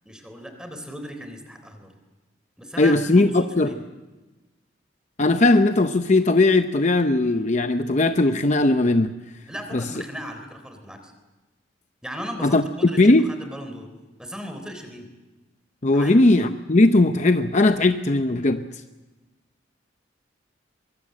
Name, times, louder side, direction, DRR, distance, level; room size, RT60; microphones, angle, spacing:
voice 1, 0.0-1.9 2.6-3.8 9.5-11.1 12.0-13.9 14.2-15.1 15.9-16.1, equal, 5° right, 3.5 m, -37 dB
voice 2, 2.8-3.7 5.2-9.1 9.7-9.8 12.4-12.6 13.0-13.3 15.8-18.6, left 2 dB, 40° left, 0.7 m, -18 dB
23.5 x 23.0 x 7.6 m
head